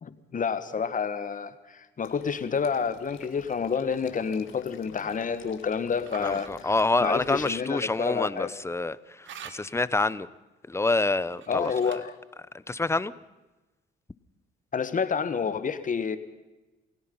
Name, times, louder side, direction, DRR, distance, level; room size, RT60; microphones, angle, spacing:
voice 1, 0.0-6.5 7.0-8.5 11.5-12.1 14.7-16.2, left 6 dB, 40° left, 12 dB, 1.7 m, -29 dB
Water / Liquid, 2.0-7.5, left 9 dB, 85° left, 1.8 m, -50 dB
sound 1, 3.5-3.8 6.1-6.5 9.2-9.9 11.3-12.2, right 8 dB, 70° right, 1.7 m, -45 dB
voice 2, 6.2-10.3 10.7-12.0 12.7-13.1, left 3 dB, 15° left, 18 dB, 0.8 m, -27 dB
28.0 x 17.5 x 5.6 m, 1.1 s
cardioid pair, 90°, 20 cm